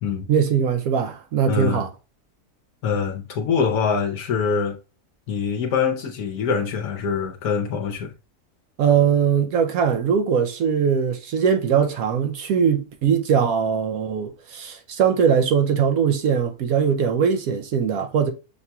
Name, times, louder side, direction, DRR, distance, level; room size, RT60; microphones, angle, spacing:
voice 1, 0.3-1.9 8.8-18.3, right 7 dB, 75° right, 1.0 m, -21 dB
voice 2, 1.5-1.8 2.8-4.8 5.3-8.1, left 6 dB, 75° left, 1.2 m, -24 dB
6.5 x 2.8 x 2.2 m
omnidirectional pair, 1.6 m